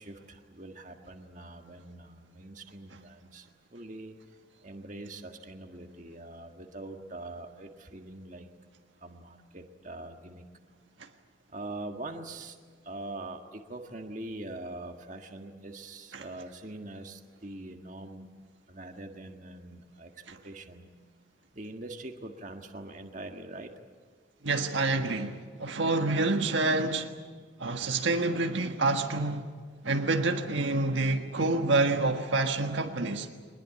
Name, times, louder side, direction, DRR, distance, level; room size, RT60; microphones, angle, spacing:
voice 1, 0.0-4.1 4.6-8.5 9.0-10.5 11.5-12.6 12.8-18.3 18.7-20.9 21.5-23.7, right 2 dB, 40° right, 1.7 m, -43 dB
voice 2, 24.4-27.1 27.6-29.5 29.8-33.3, right 2 dB, 70° right, 1.5 m, -27 dB
22.0 x 20.5 x 8.6 m
head